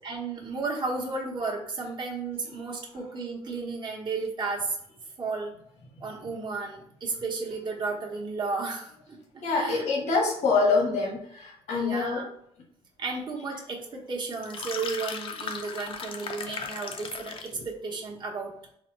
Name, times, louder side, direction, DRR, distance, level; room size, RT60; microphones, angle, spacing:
voice 1, 0.0-4.8 5.2-5.5 6.0-9.9 11.7-12.3 13.0-18.5, right 4 dB, 45° right, -1 dB, 1.0 m, -33 dB
voice 2, 9.4-12.2 17.5-17.7, left 4 dB, 80° left, -1 dB, 1.2 m, -25 dB
sound 1, 14.3-17.6, left 5 dB, 50° left, 0.5 m, -37 dB
4.1 x 2.1 x 4.5 m, 0.69 s
cardioid pair, 125°, 11 cm